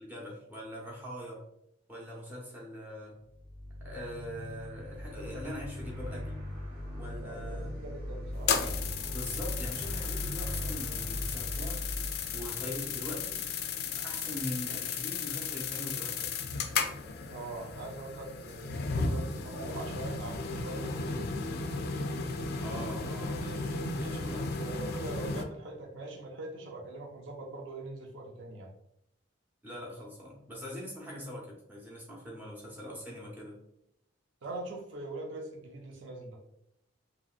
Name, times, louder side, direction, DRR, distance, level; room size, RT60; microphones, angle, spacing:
voice 1, 0.0-1.4 1.9-3.2 3.8-6.4 6.9-7.8 9.1-11.8 12.3-16.3 22.6-24.5 29.6-33.6, left 1 dB, 10° right, -4 dB, 0.7 m, -42 dB
sound 1, 3.2-13.5, left 1 dB, 50° right, 1.1 m, -39 dB
voice 2, 7.2-8.5 17.3-21.3 24.0-28.7 34.4-36.4, right 2 dB, 65° right, 0 dB, 0.5 m, -42 dB
sound 2, 8.4-25.4, left 5 dB, 50° left, 0.3 m, -35 dB
2.9 x 2.7 x 2.3 m, 0.79 s
head